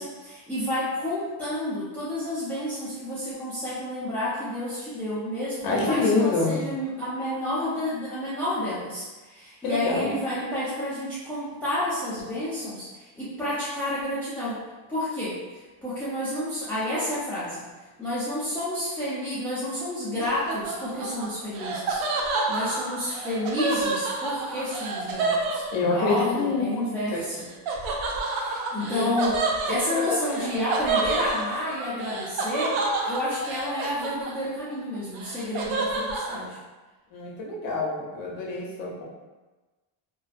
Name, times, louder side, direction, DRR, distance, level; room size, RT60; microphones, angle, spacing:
voice 1, 0.0-14.6 14.9-15.4 15.8-17.6 18.0-22.0 22.5-25.6 25.9-27.5 28.3-29.4 29.6-32.8 33.0-36.6, left 1 dB, 5° left, -11 dB, 0.6 m, -30 dB
voice 2, 5.6-6.6 9.6-10.2 25.7-26.8 27.1-27.3 28.8-29.1 29.7-30.0 30.4-30.5 37.1-39.0, left 3 dB, 45° left, -2 dB, 0.7 m, -26 dB
Laughter, 20.2-26.2 27.7-34.6 34.9-36.4, right 3 dB, 85° right, 0.6 m, -29 dB
2.6 x 2.3 x 2.4 m, 1.2 s
cardioid pair, 100°, 48 cm